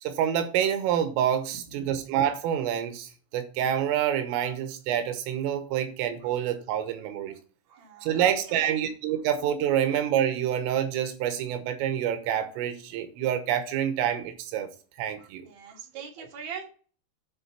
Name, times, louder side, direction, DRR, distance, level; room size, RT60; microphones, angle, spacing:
voice 1, 0.0-7.4 8.0-14.7 15.0-15.5 16.2-16.3, right 10 dB, 90° right, 3.7 m, -27 dB
voice 2, 7.7-8.8 15.2-16.7, right 6 dB, 45° right, 3.1 m, -42 dB
9.8 x 4.0 x 6.8 m
omnidirectional pair, 5.7 m